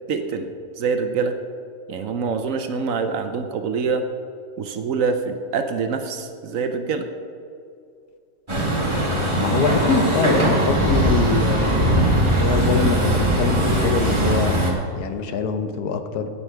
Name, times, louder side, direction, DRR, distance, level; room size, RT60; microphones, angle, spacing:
voice 1, 0.1-0.5 0.8-1.3 1.9-4.0 4.6-7.1, right 5 dB, 65° right, 7 dB, 1.0 m, -25 dB
Truck, 8.5-14.7, right 1 dB, 20° right, 1.4 m, -20 dB
voice 2, 9.3-14.6 15.0-16.3, left 5 dB, 90° left, 8 dB, 1.3 m, -24 dB
16.0 x 5.5 x 4.6 m, 2.4 s
omnidirectional pair, 1.6 m